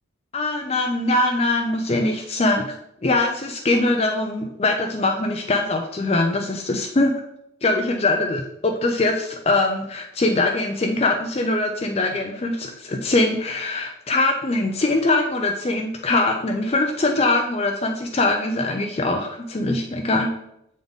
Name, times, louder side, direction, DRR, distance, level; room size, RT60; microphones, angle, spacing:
voice 1, 0.3-2.7 3.0-7.1 7.6-20.3, left 2 dB, 30° left, 3 dB, 0.4 m, -22 dB
7.4 x 3.9 x 3.5 m, 0.76 s
head